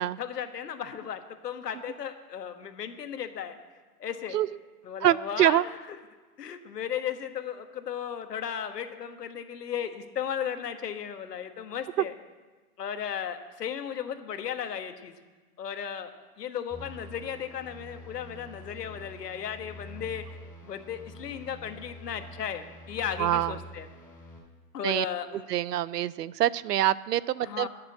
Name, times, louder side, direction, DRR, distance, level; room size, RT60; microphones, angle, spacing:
voice 1, 0.2-3.6 4.0-4.4 4.8-6.0 6.4-12.1 12.8-15.1 15.6-16.1 16.4-20.2 20.6-23.9 24.7-25.5 27.4-27.7, left 8 dB, 85° left, 8 dB, 1.4 m, -35 dB
voice 2, 5.0-5.6 23.2-23.5 24.8-25.1 25.5-27.7, right 13 dB, 80° right, 20 dB, 0.6 m, -25 dB
sound 1, 16.7-24.4, left 1 dB, ahead, 3.4 m, -46 dB
11.5 x 6.8 x 8.3 m, 1.3 s
hypercardioid pair, 175°, 47 cm